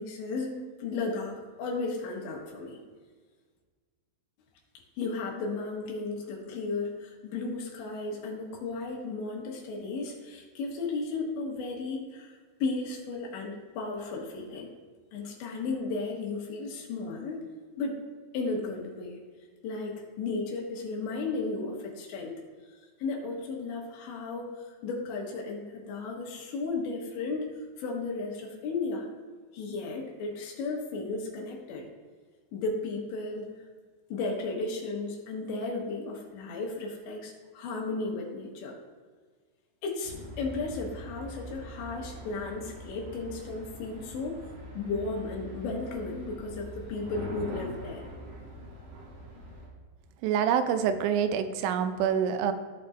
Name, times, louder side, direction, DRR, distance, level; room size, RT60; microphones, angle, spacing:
voice 1, 0.0-2.8 5.0-14.7 15.1-17.4 17.8-18.0 18.3-19.2 19.6-22.3 23.0-27.5 27.8-29.1 29.5-31.9 32.5-33.5 34.1-38.8 39.8-44.5 44.7-48.0, left 3 dB, 80° left, -1 dB, 3.5 m, -34 dB
sound 1, 40.0-49.7, right 1 dB, 70° right, 3.7 m, -43 dB
voice 2, 50.2-52.5, right 8 dB, 85° right, 9 dB, 2.9 m, -26 dB
15.0 x 6.7 x 2.6 m, 1.5 s
omnidirectional pair, 5.2 m